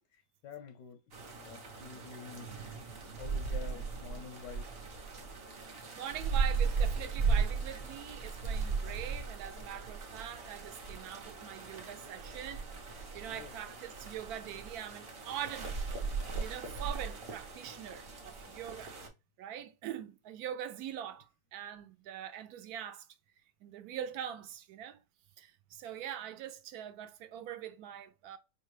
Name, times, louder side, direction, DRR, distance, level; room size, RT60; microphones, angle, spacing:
voice 1, 0.1-1.0 1.3-2.6 3.2-4.7 13.3-13.6, left 7 dB, 85° left, 1.2 m, -48 dB
sound 1, 1.1-19.1, right 5 dB, 45° right, 0.9 m, -37 dB
voice 2, 5.9-15.7 16.4-19.0 19.4-23.1 23.6-25.0 25.4-28.4, right 10 dB, 70° right, 1.0 m, -43 dB
5.0 x 2.2 x 3.2 m
omnidirectional pair, 1.8 m